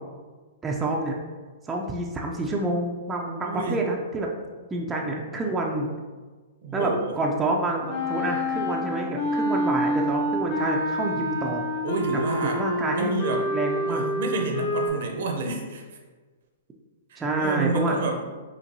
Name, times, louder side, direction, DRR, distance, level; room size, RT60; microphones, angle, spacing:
voice 1, 0.6-1.1 1.6-4.3 4.7-5.9 6.7-11.6 12.5-13.1 13.5-14.0 17.2-18.0, right 2 dB, 15° right, -1 dB, 0.5 m, -28 dB
voice 2, 3.3-3.8 6.6-7.2 11.1-11.2 11.8-12.6 12.9-13.5 13.9-16.0 17.1-18.2, right 2 dB, 65° right, 2 dB, 0.8 m, -29 dB
Wind instrument woodwind instrument, 7.9-14.9, equal, 45° left, 1.0 m, -27 dB
5.2 x 2.8 x 2.7 m, 1.4 s
hypercardioid pair, 125°, 0 cm